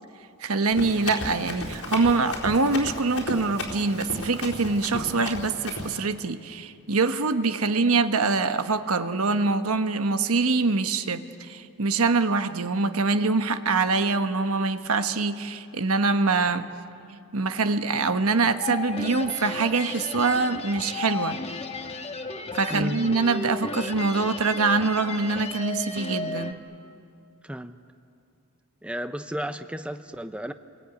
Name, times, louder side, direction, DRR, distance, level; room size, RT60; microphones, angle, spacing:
voice 1, 0.4-16.7 17.3-21.4 22.5-26.6, right 3 dB, 80° right, 9 dB, 1.2 m, -24 dB
Run, 0.7-6.0, left 2 dB, 85° left, 4.3 m, -34 dB
sound 1, 18.6-26.5, left 3 dB, 30° left, 1.3 m, -34 dB
voice 2, 22.7-23.1 27.4-27.8 28.8-30.5, equal, 5° right, 9 dB, 0.6 m, -33 dB
28.0 x 22.5 x 9.4 m, 2.5 s
head